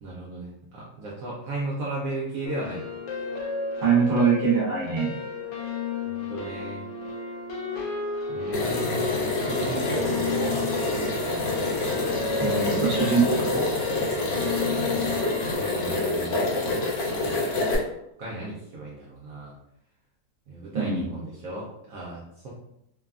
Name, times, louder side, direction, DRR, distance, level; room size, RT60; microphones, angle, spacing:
voice 1, 0.0-2.9 6.0-6.8 8.3-9.1 9.4-10.7 15.5-16.5 18.2-19.5 20.5-22.5, right 2 dB, 65° right, -5 dB, 0.9 m, -35 dB
sound 1, 2.4-15.5, left 4 dB, 85° left, 0.6 m, -33 dB
voice 2, 3.8-5.1 12.4-13.7 20.7-21.0, right 5 dB, 40° right, -4 dB, 0.7 m, -23 dB
sound 2, 8.5-17.8, left 2 dB, 65° left, 1.0 m, -27 dB
3.2 x 2.2 x 2.4 m, 0.80 s
omnidirectional pair, 1.8 m